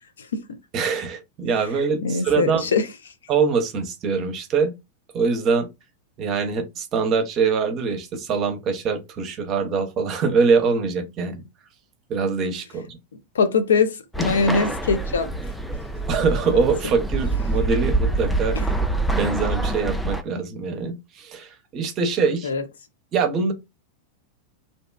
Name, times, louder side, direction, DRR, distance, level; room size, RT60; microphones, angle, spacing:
voice 1, 0.7-2.7 3.3-4.7 5.1-5.7 6.2-11.4 12.1-13.0 16.1-18.6 19.1-22.5 23.1-23.5, right 5 dB, 35° right, 0.6 m, -23 dB
voice 2, 2.0-2.9 13.3-15.3 16.5-16.6 22.4-22.6, left 4 dB, 65° left, 0.5 m, -22 dB
sound 1, 14.1-20.2, right 2 dB, ahead, 0.4 m, -25 dB
2.6 x 2.2 x 2.2 m
figure-of-eight pair, 90°, 0 cm